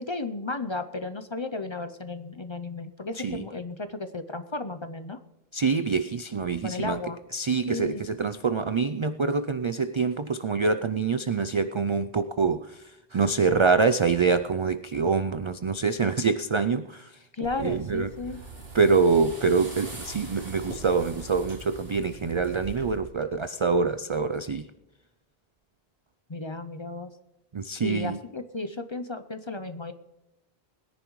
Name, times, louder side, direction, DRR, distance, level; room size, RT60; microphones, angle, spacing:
voice 1, 0.0-5.2 6.6-7.2 7.7-8.0 17.3-18.4 26.3-27.1 27.8-29.9, left 3 dB, 35° left, 10 dB, 0.6 m, -34 dB
voice 2, 5.5-7.0 7.3-12.8 13.1-17.2 17.6-18.1 18.7-24.7 27.5-28.2, right 4 dB, 50° right, 11 dB, 0.3 m, -25 dB
sound 1, 17.4-23.0, right 2 dB, 75° right, 3.0 m, -42 dB
21.5 x 10.5 x 3.1 m, 0.95 s
omnidirectional pair, 1.0 m